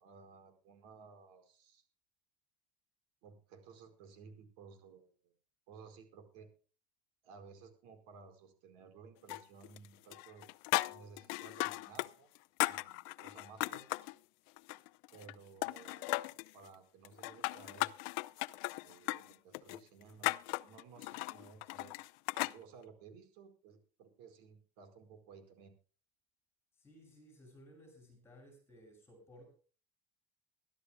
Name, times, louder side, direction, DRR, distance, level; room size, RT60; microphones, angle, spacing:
voice 1, 0.0-1.8 3.2-5.3 5.7-6.5 7.2-10.5 10.9-12.3 12.6-14.0 15.1-16.2 16.5-17.9 18.8-22.0 22.3-25.8, right 5 dB, 65° right, 8 dB, 4.6 m, -57 dB
sound 1, 9.3-9.9 10.1-12.1 12.3-14.1 14.6-15.3 15.6-16.5 17.0-22.6, left 22 dB, 60° left, 0.6 m, -37 dB
voice 2, 26.8-29.5, equal, 10° left, 3 dB, 7.8 m, -58 dB
23.5 x 13.0 x 2.2 m, 0.39 s
cardioid pair, 170°, 20 cm